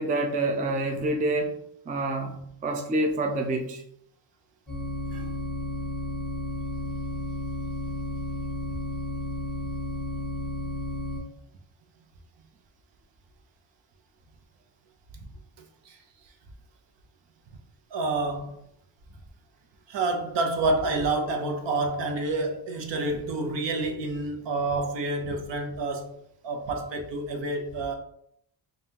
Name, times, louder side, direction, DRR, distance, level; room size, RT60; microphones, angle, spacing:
voice 1, 0.0-1.6 1.9-2.4 2.6-3.8 5.1-5.3, right 2 dB, 20° right, 0.3 m, -27 dB
sound 1, 4.7-11.2, left 1 dB, ahead, 1.3 m, -32 dB
voice 2, 17.9-18.6 19.9-26.1 26.4-27.9, right 2 dB, 70° right, 0.9 m, -28 dB
5.3 x 2.6 x 2.8 m
wide cardioid pair, 160°, 45 cm